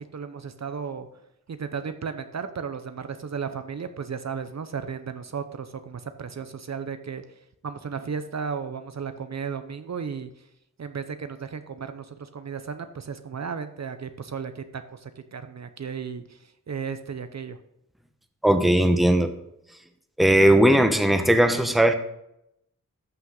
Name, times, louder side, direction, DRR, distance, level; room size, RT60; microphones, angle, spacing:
voice 1, 0.1-1.1 1.5-7.2 7.6-10.3 10.8-16.4 16.7-17.6, right 6 dB, 55° right, 9 dB, 0.7 m, -34 dB
voice 2, 18.4-19.3 20.2-21.9, right 1 dB, ahead, 7 dB, 1.0 m, -18 dB
13.5 x 5.8 x 3.9 m, 0.80 s
wide cardioid pair, 70°, 33 cm